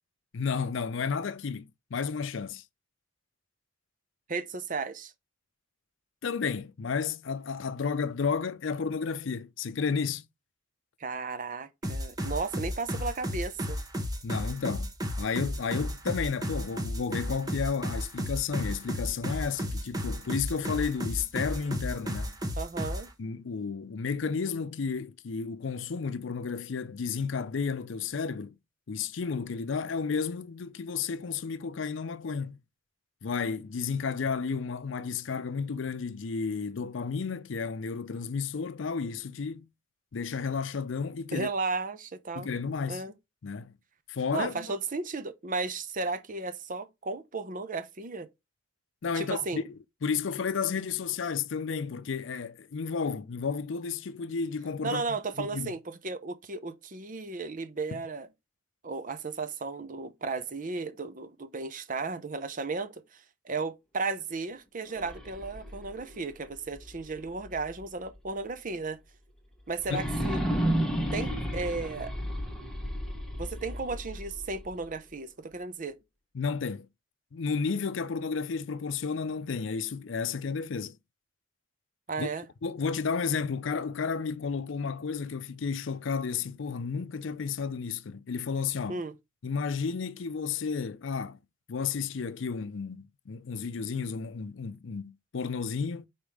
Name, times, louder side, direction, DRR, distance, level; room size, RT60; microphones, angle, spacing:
voice 1, 0.3-2.6 6.2-10.3 14.2-14.9 15.2-22.4 23.2-28.6 28.9-32.6 33.2-39.7 40.1-41.5 42.4-43.0 43.4-43.7 44.1-44.7 49.0-55.0 55.4-55.7 57.9-58.0 69.9-70.0 76.3-76.9 77.3-81.0 82.2-82.3 82.6-89.0 89.4-91.4 91.7-96.1, left 5 dB, 70° left, 0.5 m, -32 dB
voice 2, 4.3-5.1 11.0-13.8 22.6-23.1 41.3-42.5 42.9-43.1 44.3-48.3 49.1-49.6 54.8-58.3 58.8-69.0 69.7-70.4 71.1-72.1 73.3-76.0 82.1-82.5 88.9-89.1, right 3 dB, 45° right, 0.7 m, -34 dB
sound 1, 11.8-23.1, equal, 20° right, 1.0 m, -33 dB
sound 2, 64.9-67.9 68.3-68.4 69.8-74.9, equal, ahead, 1.2 m, -33 dB
5.3 x 4.4 x 4.8 m
head